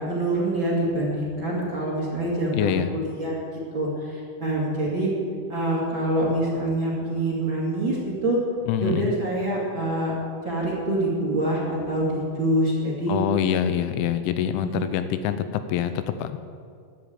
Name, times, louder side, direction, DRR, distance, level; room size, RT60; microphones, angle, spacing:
voice 1, 0.0-3.4 3.7-5.1 5.5-8.4 8.8-10.1 10.4-13.2 14.6-14.9, right 1 dB, 30° right, -5 dB, 2.5 m, -25 dB
voice 2, 2.5-2.9 8.7-9.2 13.1-16.4, left 10 dB, 90° left, 10 dB, 3.1 m, -25 dB
11.5 x 10.5 x 8.6 m, 2.2 s
omnidirectional pair, 5.5 m